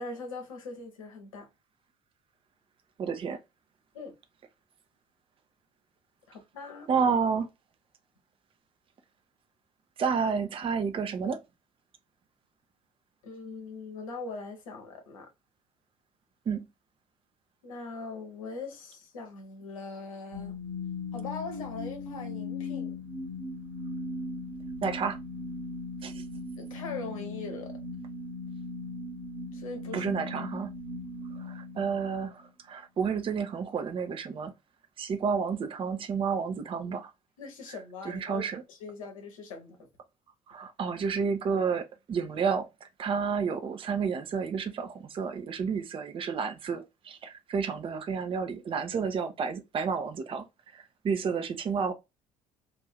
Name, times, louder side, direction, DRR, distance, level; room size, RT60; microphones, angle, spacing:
voice 1, 0.0-1.5 3.9-4.1 6.3-6.9 13.2-15.3 17.6-20.5 21.1-22.9 26.6-27.8 29.5-30.1 37.4-39.9, left 3 dB, 75° left, 0.9 m, -41 dB
voice 2, 3.0-3.4 6.9-7.5 10.0-11.4 16.5-16.7 24.8-25.2 26.0-26.2 29.9-30.7 31.4-32.4 32.7-34.5 35.0-37.1 38.0-38.6 40.5-50.4 50.7-51.9, right 6 dB, 30° right, 0.6 m, -30 dB
sound 1, 20.3-32.5, left 2 dB, 70° right, 1.1 m, -38 dB
2.6 x 2.5 x 3.3 m
figure-of-eight pair, 55°, 18 cm